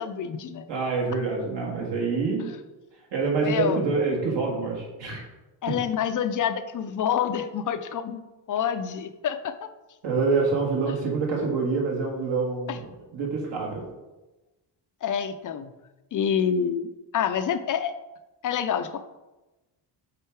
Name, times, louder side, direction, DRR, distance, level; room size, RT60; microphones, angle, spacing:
voice 1, 0.0-0.6 3.4-3.8 5.6-8.2 8.5-9.5 12.7-12.8 15.0-15.7 16.1-17.9 18.4-19.0, left 8 dB, 45° left, 9 dB, 0.4 m, -27 dB
voice 2, 0.7-2.5 3.1-5.2 10.0-13.9, right 4 dB, 60° right, -1 dB, 2.0 m, -26 dB
8.0 x 3.7 x 4.6 m, 1.1 s
cardioid pair, 160°, 48 cm